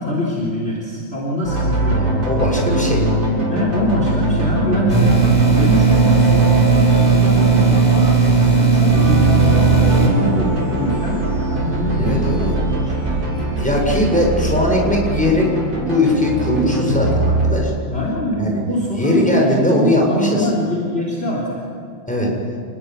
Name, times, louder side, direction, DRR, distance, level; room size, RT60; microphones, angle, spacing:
voice 1, 0.0-2.0 3.5-8.2 8.5-13.4 17.9-21.6, equal, 30° left, -2 dB, 4.0 m, -23 dB
sound 1, 1.4-17.6, right 2 dB, 65° right, 8.2 m, -21 dB
voice 2, 1.9-3.1 12.0-12.5 13.6-17.7 18.4-18.6 18.9-20.5 22.1-22.3, left 1 dB, 5° left, -1 dB, 7.5 m, -19 dB
sound 2, 4.9-10.1, right 5 dB, 20° right, 5.0 m, -15 dB
29.0 x 20.5 x 9.6 m, 2.3 s
omnidirectional pair, 2.3 m